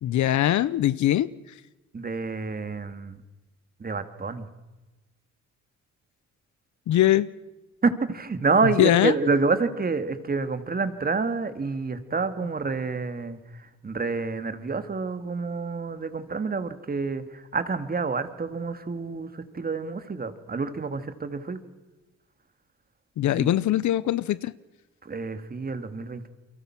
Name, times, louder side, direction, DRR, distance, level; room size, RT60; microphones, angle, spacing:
voice 1, 0.0-1.3 6.9-7.3 8.8-9.1 23.2-24.5, left 13 dB, 70° left, 0.9 m, -22 dB
voice 2, 1.9-3.2 3.8-4.5 7.8-21.6 23.4-23.6 25.0-26.3, right 4 dB, 30° right, 2.3 m, -28 dB
30.0 x 23.5 x 6.1 m
cardioid pair, 90°, 30 cm